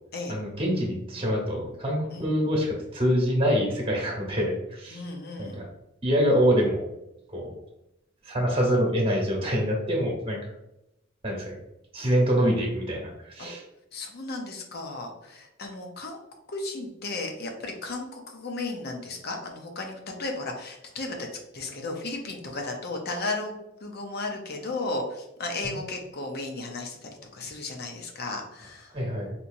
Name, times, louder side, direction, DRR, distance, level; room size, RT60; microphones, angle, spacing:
voice 1, 0.3-5.0 5.4-5.7 6.0-6.8 7.3-7.5 8.2-10.4 11.2-11.6 11.9-13.6 25.6-25.8 28.9-29.3, equal, 30° right, -2 dB, 1.1 m, -25 dB
voice 2, 4.9-5.6 13.4-13.5 13.9-16.2 16.5-21.3 21.5-28.9, left 2 dB, 55° left, 2 dB, 0.7 m, -34 dB
4.4 x 2.7 x 2.6 m, 0.88 s
head